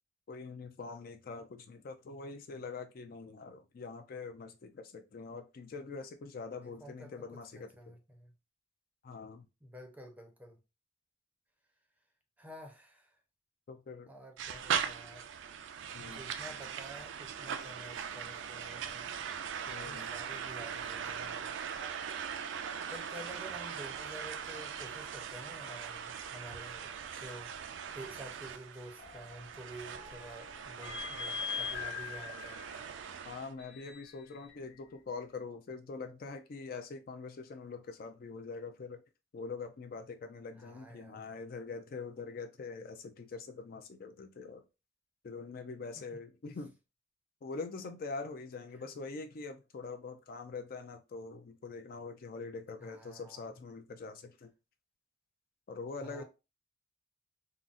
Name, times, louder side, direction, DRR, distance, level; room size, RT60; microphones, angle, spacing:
voice 1, 0.3-8.0 9.0-9.4 13.7-14.1 15.9-16.2 19.7-20.1 33.2-39.0 39.3-44.6 45.2-46.7 47.4-54.5 55.7-56.2, left 4 dB, 50° left, 0.4 m, -44 dB
voice 2, 6.6-7.2 7.6-8.3 9.6-10.6 12.4-13.2 14.1-15.3 16.0-19.1 19.7-21.5 22.5-32.6 40.6-41.2 46.0-46.1 52.8-53.5 56.0-56.2, right 1 dB, 10° right, 0.5 m, -50 dB
sound 1, 14.4-33.5, right 7 dB, 70° right, 0.3 m, -40 dB
sound 2, 29.0-34.6, left 6 dB, 90° left, 1.2 m, -43 dB
3.8 x 2.0 x 2.4 m
head